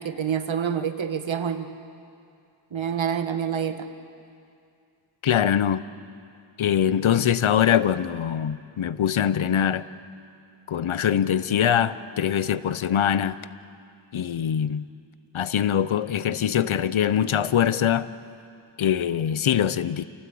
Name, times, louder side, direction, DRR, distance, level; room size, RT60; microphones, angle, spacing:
voice 1, 0.0-1.7 2.7-3.9, right 8 dB, 70° right, 9 dB, 1.5 m, -27 dB
voice 2, 5.2-5.8 6.6-9.9 10.7-13.4 14.1-14.8 15.3-18.1 18.8-20.0, left 9 dB, 80° left, 16 dB, 0.8 m, -23 dB
28.5 x 17.5 x 8.5 m, 2.4 s
wide cardioid pair, 75°, 47 cm